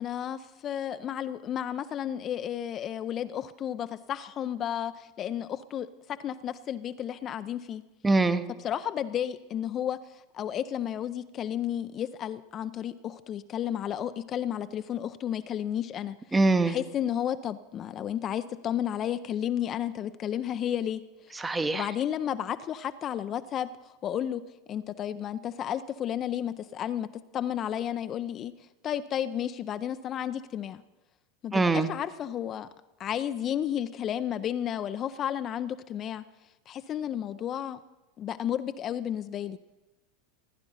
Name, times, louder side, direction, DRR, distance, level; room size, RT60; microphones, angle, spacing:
voice 1, 0.0-7.8 8.6-16.4 16.7-21.0 21.3-21.4 21.7-24.4 24.7-28.5 28.8-30.8 31.4-32.7 33.0-36.2 36.7-37.8 38.2-39.6, left 10 dB, 35° left, 12 dB, 0.5 m, -32 dB
voice 2, 8.0-8.4 16.3-16.8 21.4-21.9 31.5-31.9, right 3 dB, 15° right, 11 dB, 0.8 m, -23 dB
16.0 x 9.9 x 5.4 m, 1.1 s
figure-of-eight pair, 85°, 0 cm